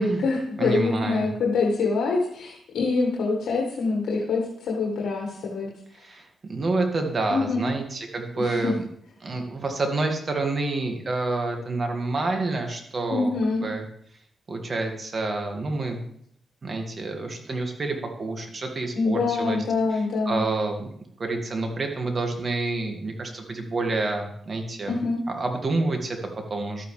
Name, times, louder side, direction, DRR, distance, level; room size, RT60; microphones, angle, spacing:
voice 1, 0.0-5.7 7.3-7.7 8.4-8.7 13.1-13.6 18.9-20.4 24.8-25.2, left 3 dB, 80° left, -1 dB, 1.6 m, -25 dB
voice 2, 0.6-1.3 6.0-8.8 9.2-13.3 13.6-13.8 14.5-16.0 16.6-19.6 20.3-20.9 21.2-25.0 25.3-26.8, right 3 dB, 45° right, 3 dB, 2.0 m, -28 dB
12.0 x 8.8 x 3.3 m, 0.68 s
cardioid pair, 75°, 0 cm